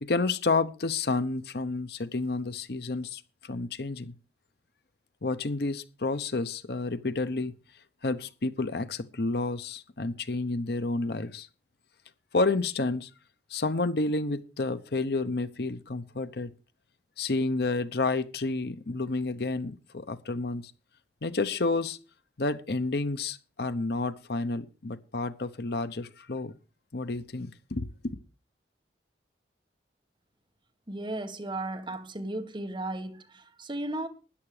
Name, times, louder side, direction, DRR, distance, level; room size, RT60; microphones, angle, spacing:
voice 1, 0.0-4.1 5.2-7.5 8.0-11.5 12.3-13.1 13.5-16.5 17.2-20.6 21.2-22.0 22.4-26.6 26.9-28.2, left 3 dB, 65° left, 0.9 m, -30 dB
voice 2, 30.9-34.1, right 2 dB, 25° right, 1.6 m, -35 dB
13.0 x 10.0 x 5.0 m
head